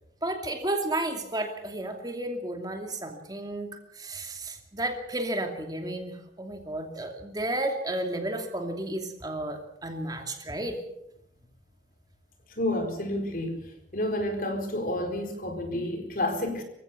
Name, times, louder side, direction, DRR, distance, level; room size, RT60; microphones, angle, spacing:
voice 1, 0.2-3.7 4.0-10.8, right 1 dB, 20° right, 4 dB, 2.6 m, -32 dB
voice 2, 12.6-13.6 13.9-16.6, left 1 dB, 50° left, 5 dB, 4.4 m, -30 dB
25.5 x 16.0 x 7.0 m, 0.80 s
head